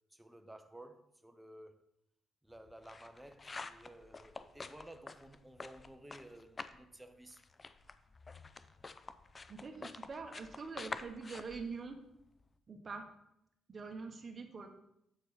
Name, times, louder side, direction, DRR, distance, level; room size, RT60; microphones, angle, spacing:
voice 1, 0.1-1.8 2.4-7.5, right 1 dB, 5° right, 0.7 m, -54 dB
sound 1, 2.5-6.9 7.1-12.5, left 3 dB, 30° left, 0.4 m, -48 dB
voice 2, 9.5-12.0 12.7-13.1 13.7-14.7, right 4 dB, 40° right, 1.2 m, -44 dB
7.8 x 4.7 x 4.3 m
cardioid pair, 90°, 0 cm